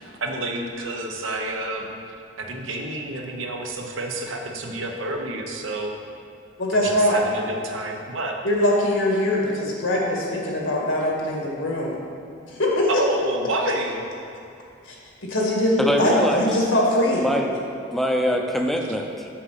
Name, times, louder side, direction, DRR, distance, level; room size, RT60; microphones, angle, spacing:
voice 1, 0.0-2.0 2.4-5.9 6.7-8.3 12.9-14.0, right 2 dB, 85° right, 2 dB, 1.0 m, -29 dB
voice 2, 6.6-7.2 8.4-12.0 12.5-13.0 15.2-17.2, left 1 dB, 75° left, -3 dB, 2.0 m, -22 dB
voice 3, 15.8-16.5 17.2-17.5 17.9-19.3, equal, ahead, 2 dB, 0.6 m, -23 dB
7.3 x 6.7 x 5.6 m, 2.6 s
head